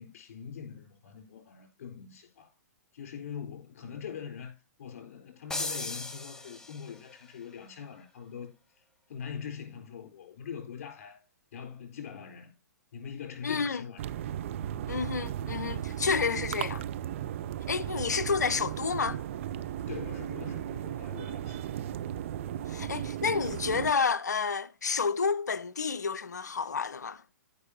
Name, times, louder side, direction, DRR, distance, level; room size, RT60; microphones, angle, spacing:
voice 1, 0.0-2.5 2.9-8.8 9.1-11.2 11.5-12.5 12.9-14.1 19.8-21.7, left 7 dB, 50° left, 3.8 m, -43 dB
sound 1, 5.5-7.1, left 2 dB, 5° left, 0.7 m, -37 dB
voice 2, 13.4-13.8 14.9-16.8 17.7-19.2 22.7-27.2, left 5 dB, 70° left, 0.6 m, -30 dB
sound 2, 14.0-23.9, right 11 dB, 45° right, 0.5 m, -36 dB
15.5 x 5.3 x 2.8 m
figure-of-eight pair, 120°, 10 cm